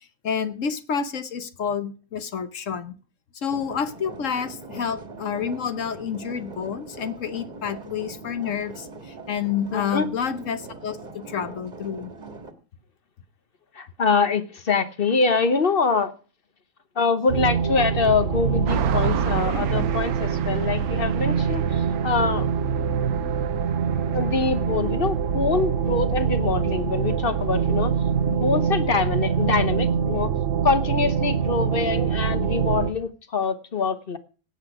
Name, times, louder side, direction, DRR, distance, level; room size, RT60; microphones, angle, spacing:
voice 1, 0.2-2.9 3.3-12.1, left 7 dB, 60° left, 12 dB, 1.3 m, -29 dB
Water mill - loud gears, 3.5-12.5, right 3 dB, 35° right, 1.6 m, -41 dB
voice 2, 9.7-10.1 13.8-16.1 17.0-22.5 24.1-27.9 28.3-30.3 30.6-34.2, left 4 dB, 45° left, 11 dB, 1.1 m, -24 dB
sound 1, 17.3-32.9, right 7 dB, 60° right, 1.1 m, -24 dB
sound 2, 18.7-28.3, right 10 dB, 85° right, 1.3 m, -37 dB
17.0 x 8.2 x 4.8 m, 0.37 s
omnidirectional pair, 1.5 m